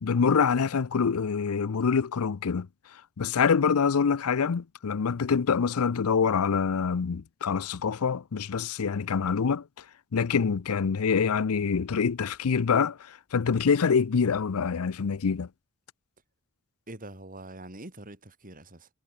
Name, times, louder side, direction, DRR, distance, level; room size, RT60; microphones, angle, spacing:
voice 1, 0.0-2.7 3.2-9.7 10.1-15.5, left 6 dB, 90° left, 0.5 m, -25 dB
voice 2, 16.9-18.9, right 1 dB, 40° right, 6.2 m, -44 dB
head